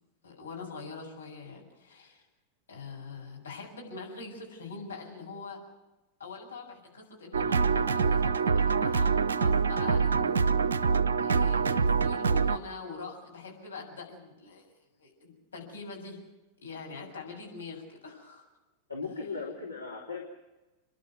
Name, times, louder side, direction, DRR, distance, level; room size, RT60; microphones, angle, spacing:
voice 1, 0.2-2.3 2.7-5.6 6.2-10.5 11.2-14.7 15.0-16.2 16.6-18.5, left 4 dB, 70° left, -1 dB, 7.1 m, -43 dB
sound 1, 7.3-12.6, right 5 dB, 70° right, 0.7 m, -25 dB
voice 2, 18.9-20.2, left 4 dB, 85° left, -4 dB, 3.4 m, -37 dB
30.0 x 11.5 x 9.5 m, 1.1 s
figure-of-eight pair, 90°, 0 cm